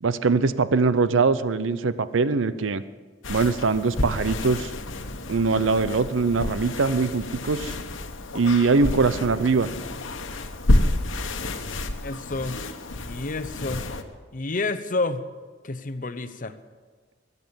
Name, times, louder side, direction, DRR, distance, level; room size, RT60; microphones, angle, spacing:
voice 1, 0.0-2.8 3.3-4.7 5.3-7.7 8.3-9.7, right 4 dB, 90° right, 14 dB, 0.6 m, -22 dB
sound 1, 3.2-14.0, left 1 dB, 85° left, 1.2 m, -29 dB
voice 2, 12.0-12.6 13.0-13.9 14.3-15.2 15.6-16.6, left 3 dB, 45° left, 11 dB, 0.8 m, -29 dB
22.5 x 8.3 x 7.1 m, 1.5 s
head